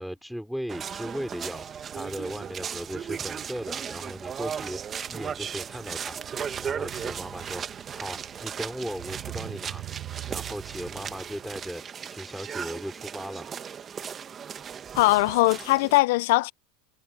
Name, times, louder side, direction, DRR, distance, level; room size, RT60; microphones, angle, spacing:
voice 1, 0.0-13.5, equal, ahead, 5.0 m, -37 dB
sound 1, 0.7-16.0, right 7 dB, 30° right, 1.2 m, -36 dB
sound 2, 0.7-11.7, right 16 dB, 50° right, 5.8 m, -45 dB
voice 2, 15.0-16.5, left 21 dB, 75° left, 0.3 m, -21 dB
supercardioid pair, 120°, 0 cm